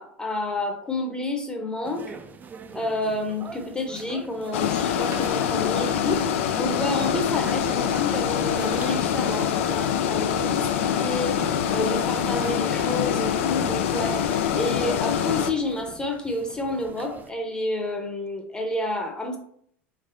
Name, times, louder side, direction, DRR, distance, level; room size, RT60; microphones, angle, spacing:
voice 1, 0.0-2.2 2.7-19.4, left 2 dB, 15° left, 3 dB, 0.8 m, -30 dB
sound 1, 1.8-17.3, right 5 dB, 25° right, 0.4 m, -42 dB
sound 2, 4.5-15.5, left 8 dB, 75° left, 0.4 m, -25 dB
3.5 x 3.3 x 2.6 m, 0.65 s
hypercardioid pair, 90°, 7 cm